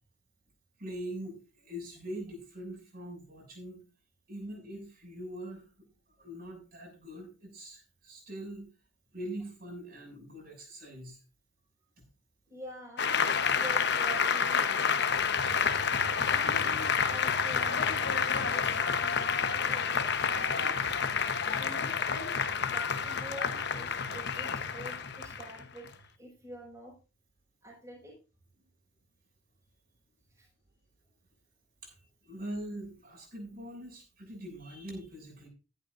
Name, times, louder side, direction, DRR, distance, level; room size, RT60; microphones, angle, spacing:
voice 1, 0.8-3.8 4.3-5.6 6.2-8.7 9.1-11.2 31.8-31.9 32.3-35.5, right 1 dB, 45° right, 0 dB, 7.0 m, -42 dB
voice 2, 12.5-13.2 13.5-15.0 16.3-19.4 19.6-20.7 21.4-26.9 27.6-28.1 30.3-30.5, right 1 dB, 15° right, -3 dB, 5.9 m, -47 dB
Applause, 13.0-26.0, left 6 dB, 55° left, 1.1 m, -29 dB
15.0 x 12.0 x 2.6 m, 0.33 s
head